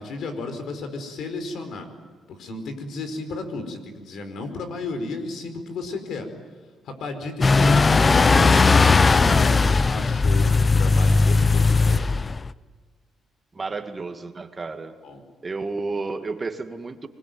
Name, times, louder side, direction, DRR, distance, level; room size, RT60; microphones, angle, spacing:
voice 1, 0.0-1.9 2.3-6.3 6.8-12.2 13.6-13.7 15.0-15.2, left 3 dB, 70° left, 7 dB, 4.9 m, -33 dB
sound 1, 7.4-12.5, left 4 dB, 30° left, 0.7 m, -18 dB
voice 2, 13.5-14.9 15.4-17.1, right 3 dB, 30° right, 7 dB, 2.2 m, -31 dB
25.5 x 21.0 x 9.5 m, 1.4 s
cardioid pair, 90°, 0 cm